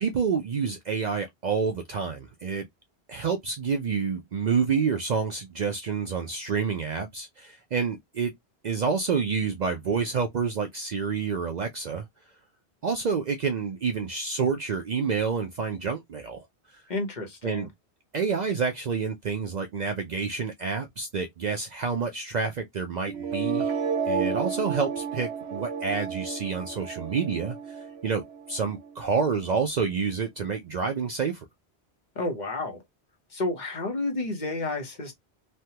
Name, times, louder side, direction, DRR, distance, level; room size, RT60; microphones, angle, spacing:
voice 1, 0.0-2.7 3.1-8.3 8.6-12.0 12.8-16.8 17.4-17.7 18.1-23.8 24.1-31.5, right 5 dB, 55° right, 0.5 m, -28 dB
voice 2, 16.9-17.7 32.2-32.8 33.3-35.1, left 2 dB, 45° left, 1.0 m, -30 dB
sound 1, 23.1-29.0, right 6 dB, 85° right, 0.9 m, -32 dB
3.2 x 2.2 x 2.8 m
omnidirectional pair, 1.1 m